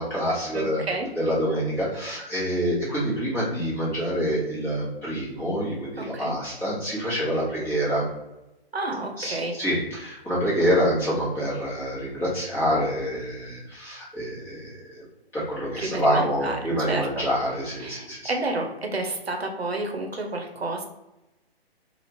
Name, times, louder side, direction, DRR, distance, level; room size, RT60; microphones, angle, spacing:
voice 1, 0.0-0.8 1.1-8.0 9.2-15.0 15.3-18.3, equal, 5° left, -9 dB, 1.1 m, -26 dB
voice 2, 0.5-1.1 6.0-6.3 8.7-9.5 15.8-17.2 17.8-20.8, right 2 dB, 85° right, 3 dB, 0.7 m, -30 dB
3.4 x 2.4 x 2.9 m, 0.95 s
figure-of-eight pair, 135°, 31 cm